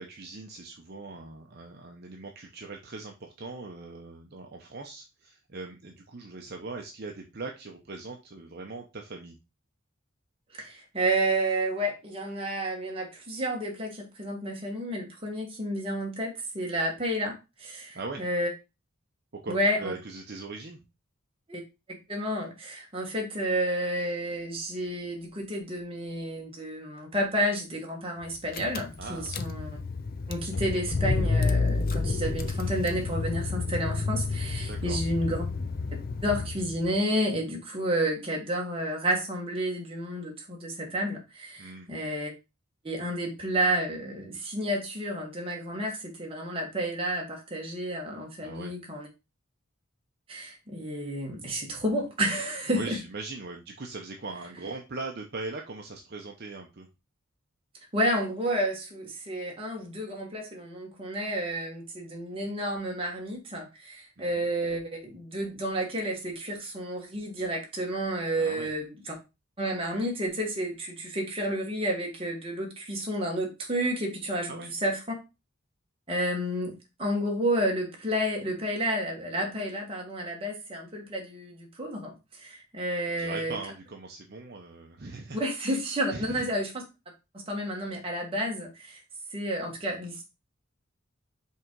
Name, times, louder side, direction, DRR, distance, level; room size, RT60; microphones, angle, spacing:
voice 1, 0.0-9.4 17.9-18.3 19.4-20.8 29.0-29.4 34.7-35.0 41.6-41.9 48.4-48.7 52.7-56.9 64.2-64.4 68.4-68.7 74.5-74.7 83.1-85.8 86.1-86.5, right 3 dB, 50° right, 2 dB, 0.7 m, -40 dB
voice 2, 10.6-18.5 19.5-19.9 21.5-21.6 22.1-29.8 30.3-35.4 36.2-42.3 42.8-49.1 50.3-53.0 57.9-69.2 69.6-75.2 76.1-76.7 77.0-82.1 82.4-83.6 85.3-86.7 87.5-89.0 89.3-90.3, right 1 dB, 25° right, 0 dB, 1.6 m, -31 dB
Car / Engine, 28.2-28.3 28.5-36.9, left 3 dB, 45° left, 0.5 m, -30 dB
5.6 x 3.7 x 4.6 m, 0.27 s
head